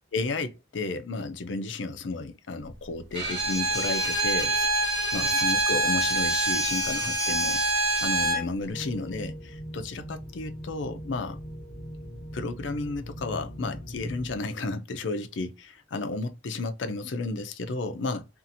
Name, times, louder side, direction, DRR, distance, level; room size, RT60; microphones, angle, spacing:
voice 1, 0.1-4.7 5.1-7.6 8.0-11.4 12.3-18.3, left 3 dB, 85° left, 0.5 m, -32 dB
Bowed string instrument, 3.1-8.5, right 2 dB, 80° right, 1.3 m, -25 dB
sound 1, 8.7-14.4, equal, 35° left, 0.7 m, -40 dB
2.7 x 2.5 x 2.6 m
head